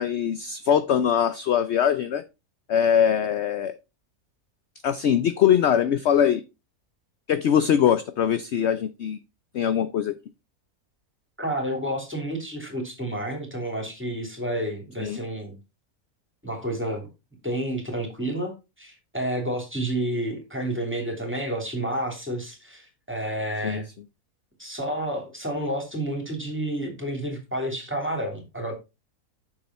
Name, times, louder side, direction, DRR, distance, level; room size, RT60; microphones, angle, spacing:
voice 1, 0.0-2.2 2.7-3.7 4.8-6.4 7.3-9.2 9.5-10.1 15.0-15.2 23.6-23.8, left 9 dB, 60° left, 12 dB, 0.8 m, -22 dB
voice 2, 11.4-15.6 16.4-17.1 17.4-23.9 24.6-28.7, right 1 dB, 10° right, 3 dB, 3.0 m, -30 dB
8.8 x 6.7 x 4.2 m, 0.26 s
omnidirectional pair, 1.6 m